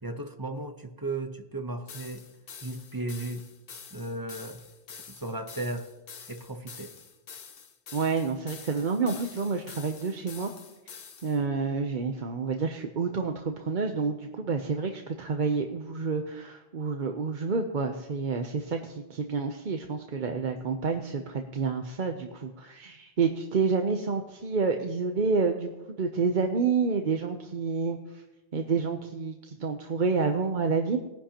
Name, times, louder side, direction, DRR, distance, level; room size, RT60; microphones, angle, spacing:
voice 1, 0.0-2.2 2.6-3.4 3.9-4.6 5.1-5.9 6.3-6.9, right 2 dB, 20° right, 6 dB, 0.8 m, -35 dB
sound 1, 1.9-11.4, left 6 dB, 60° left, 1.1 m, -47 dB
voice 2, 7.9-10.5 11.2-25.7 26.0-28.0 28.5-31.0, right 5 dB, 50° right, 4 dB, 0.9 m, -29 dB
20.0 x 10.5 x 2.9 m, 1.0 s
omnidirectional pair, 1.1 m